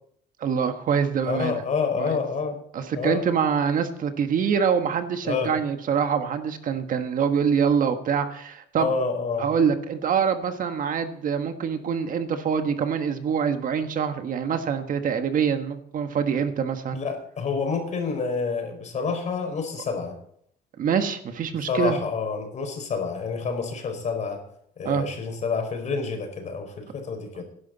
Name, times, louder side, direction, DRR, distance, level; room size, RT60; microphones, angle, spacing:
voice 1, 0.4-1.6 2.0-2.2 2.7-8.9 9.4-17.0 20.8-22.0 24.8-25.0 27.3-27.4, right 7 dB, 55° right, 7 dB, 1.5 m, -25 dB
voice 2, 1.3-2.6 2.9-3.2 5.2-5.5 8.8-9.4 16.9-20.1 21.7-24.4 24.8-27.4, left 5 dB, 45° left, 5 dB, 4.5 m, -28 dB
17.0 x 11.0 x 4.2 m, 0.67 s
cardioid pair, 110°, 17 cm